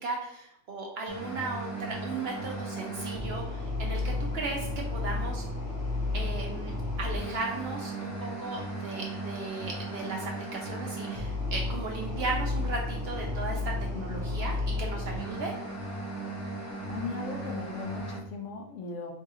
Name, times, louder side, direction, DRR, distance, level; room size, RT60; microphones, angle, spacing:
voice 1, 0.0-5.4 6.1-15.5, right 3 dB, 60° right, 0 dB, 0.7 m, -36 dB
sound 1, 1.1-18.2, left 1 dB, 25° left, 0.4 m, -34 dB
voice 2, 13.9-14.3 16.9-19.1, left 4 dB, 65° left, 2 dB, 0.9 m, -38 dB
4.6 x 2.4 x 2.8 m, 0.75 s
omnidirectional pair, 1.4 m